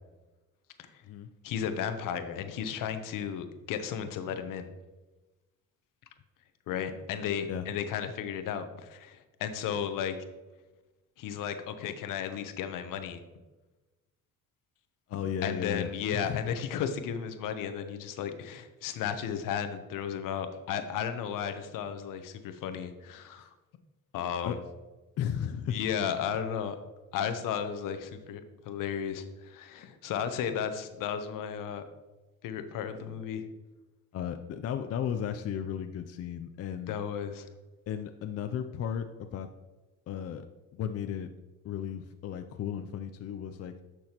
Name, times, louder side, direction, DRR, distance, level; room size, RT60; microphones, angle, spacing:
voice 1, 1.4-4.7 6.7-10.1 11.2-13.2 15.4-23.5 24.1-24.6 25.7-26.8 27.1-31.8 32.4-33.4 36.9-37.5, left 8 dB, 70° left, 9 dB, 0.9 m, -34 dB
voice 2, 15.1-15.9 16.2-16.4 24.4-24.5 25.2-25.8 34.1-37.0 37.9-39.5 40.1-40.5 40.7-41.3 41.6-43.7, left 9 dB, 45° left, 7 dB, 0.5 m, -34 dB
10.5 x 6.3 x 2.9 m, 1.1 s
cardioid pair, 100°, 34 cm